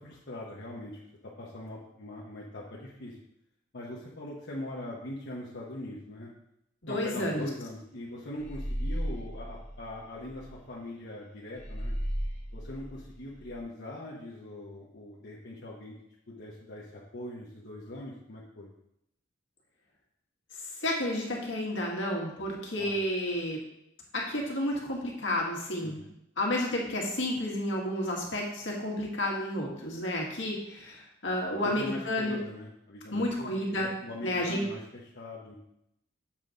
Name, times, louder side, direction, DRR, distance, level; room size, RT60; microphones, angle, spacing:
voice 1, 0.0-3.2 3.7-6.3 6.9-11.9 12.5-16.0 16.3-18.7 22.8-22.9 25.8-26.0 31.6-35.6, left 1 dB, 60° left, -5 dB, 1.0 m, -41 dB
voice 2, 6.8-7.5 20.8-23.6 24.1-26.0 26.4-32.4 33.1-33.9 34.2-34.6, left 1 dB, 80° left, -2 dB, 1.8 m, -31 dB
sound 1, 8.4-10.5 11.6-13.6, equal, 35° left, 1.6 m, -35 dB
7.4 x 4.0 x 4.9 m, 0.80 s
head